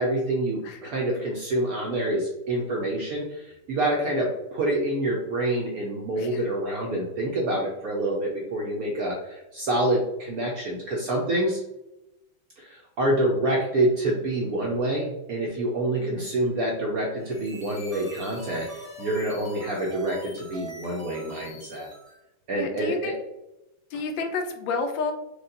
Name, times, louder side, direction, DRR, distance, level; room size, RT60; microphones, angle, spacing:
voice 1, 0.0-11.6 12.6-21.9 22.5-23.1 23.9-24.0, right 1 dB, 70° right, -1 dB, 0.9 m, -27 dB
voice 2, 16.0-16.3 22.5-23.1 23.9-25.1, left 4 dB, 75° left, 5 dB, 1.3 m, -30 dB
sound 1, 17.2-22.2, right 2 dB, 25° left, 0.8 m, -44 dB
5.0 x 2.3 x 3.8 m, 0.92 s
omnidirectional pair, 2.2 m